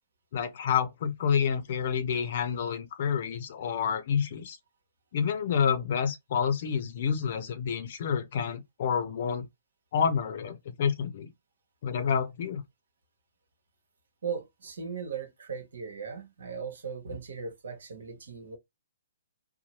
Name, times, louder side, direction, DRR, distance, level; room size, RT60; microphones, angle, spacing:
voice 1, 0.3-4.6 5.1-9.5 9.9-11.3 11.8-12.6, left 7 dB, 55° left, 0.6 m, -28 dB
voice 2, 14.2-18.6, right 6 dB, 70° right, 1.0 m, -38 dB
2.9 x 2.1 x 3.0 m
hypercardioid pair, 130°, 0 cm